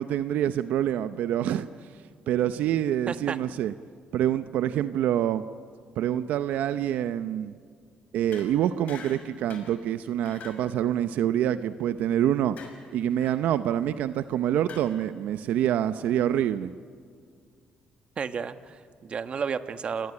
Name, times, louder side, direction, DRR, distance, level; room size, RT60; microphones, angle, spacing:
voice 1, 0.0-1.7 2.3-3.7 4.1-5.4 6.0-7.5 8.1-12.6 12.9-16.7, right 11 dB, 80° right, 12 dB, 0.7 m, -26 dB
voice 2, 3.1-3.4 18.2-20.1, right 6 dB, 45° right, 11 dB, 1.2 m, -32 dB
sound 1, 8.3-8.5 8.9-9.2 9.5-9.7 10.2-10.6 12.6-12.8 13.2-13.3 14.7-14.8, left 6 dB, 60° left, 6.1 m, -44 dB
28.5 x 19.5 x 9.7 m, 2.1 s
cardioid pair, 100°, 3 cm